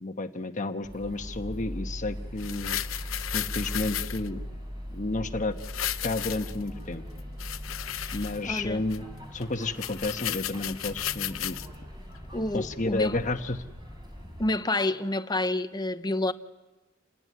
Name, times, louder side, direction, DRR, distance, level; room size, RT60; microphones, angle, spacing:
voice 1, 0.0-2.8 3.3-4.4 4.9-5.6 6.0-7.0 8.1-11.6 12.5-13.6, left 2 dB, 40° left, 1.2 m, -31 dB
sound 1, 0.8-14.4, equal, 20° right, 4.8 m, -40 dB
sound 2, 2.4-4.3 5.6-6.7 7.2-8.6 8.9-9.0 9.4-9.5 9.7-11.7 12.2-12.3, left 12 dB, 80° left, 0.8 m, -34 dB
voice 2, 8.0-8.8 12.3-13.2 14.4-16.3, left 2 dB, 20° left, 0.8 m, -29 dB
28.5 x 19.0 x 9.7 m
head